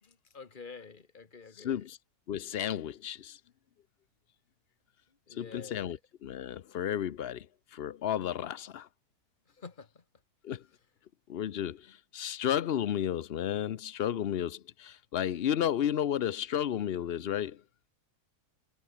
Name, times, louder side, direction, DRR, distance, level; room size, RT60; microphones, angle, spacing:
voice 1, 0.0-1.9 5.1-6.0 9.5-10.0, left 5 dB, 30° left, 1.5 m, -49 dB
voice 2, 1.5-2.0 2.3-3.4 5.3-7.5 7.7-8.9 10.4-10.6 11.3-17.6, left 10 dB, 60° left, 0.6 m, -32 dB
omnidirectional pair, 1.8 m